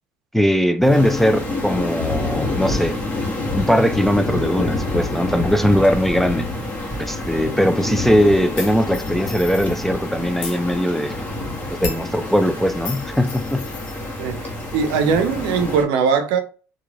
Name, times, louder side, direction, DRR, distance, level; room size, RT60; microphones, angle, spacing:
voice 1, 0.3-3.0 3.5-6.5 7.0-11.2 11.7-13.7, equal, 5° left, 0.3 m, -19 dB
sound 1, 0.8-15.8, left 2 dB, 45° left, 1.1 m, -30 dB
sound 2, 0.9-15.8, left 2 dB, 20° left, 0.9 m, -30 dB
sound 3, 8.6-9.9 10.3-10.6 11.8-12.1 12.9-14.1, left 5 dB, 75° left, 0.9 m, -33 dB
voice 2, 14.7-16.4, right 6 dB, 75° right, 0.5 m, -20 dB
3.0 x 2.2 x 2.3 m
supercardioid pair, 75°, 8 cm